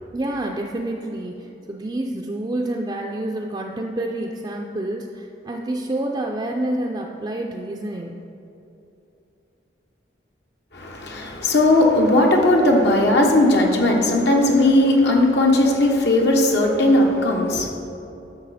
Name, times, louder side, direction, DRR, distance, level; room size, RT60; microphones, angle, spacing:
voice 1, 0.1-8.2, right 1 dB, 25° right, 1 dB, 0.4 m, -28 dB
voice 2, 10.7-17.7, left 1 dB, 70° left, 1 dB, 1.1 m, -17 dB
11.5 x 6.5 x 4.1 m, 2.9 s
head